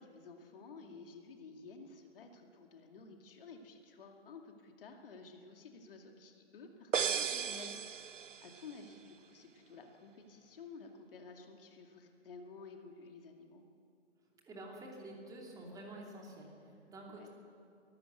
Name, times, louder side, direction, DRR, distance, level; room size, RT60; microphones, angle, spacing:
voice 1, 0.0-13.6 17.1-17.3, left 4 dB, 50° left, 3 dB, 2.5 m, -53 dB
sound 1, 6.9-8.7, right 7 dB, 85° right, 0.7 m, -36 dB
voice 2, 14.5-17.3, right 1 dB, 10° right, -1 dB, 2.9 m, -49 dB
23.0 x 14.5 x 8.1 m, 2.5 s
figure-of-eight pair, 140°, 36 cm